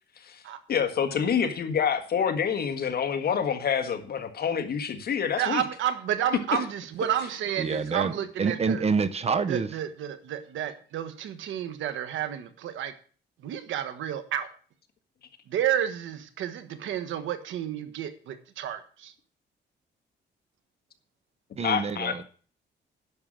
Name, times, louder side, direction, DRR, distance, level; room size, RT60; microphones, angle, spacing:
voice 1, 0.7-5.6 21.6-22.1, left 7 dB, 55° left, 1.7 m, -27 dB
voice 2, 5.4-8.8 9.5-12.9 13.4-14.5 15.5-19.1, right 10 dB, 90° right, 1.3 m, -31 dB
voice 3, 7.6-8.1 8.4-9.7 21.6-22.2, right 5 dB, 35° right, 0.8 m, -27 dB
10.5 x 6.5 x 7.5 m
cardioid pair, 130°, 19 cm